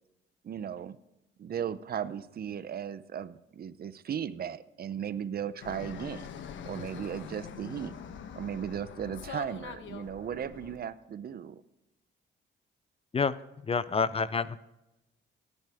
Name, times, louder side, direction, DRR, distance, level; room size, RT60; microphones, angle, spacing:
voice 1, 0.4-1.0 1.4-6.3 6.6-7.9 8.4-11.6, right 8 dB, 50° right, 15 dB, 0.7 m, -36 dB
Fixed-wing aircraft airplane, 5.6-10.8, left 8 dB, 75° left, 1.2 m, -44 dB
voice 2, 13.6-14.6, left 5 dB, 30° left, 17 dB, 0.5 m, -28 dB
16.5 x 11.0 x 3.6 m, 0.95 s
cardioid pair, 90°, 20 cm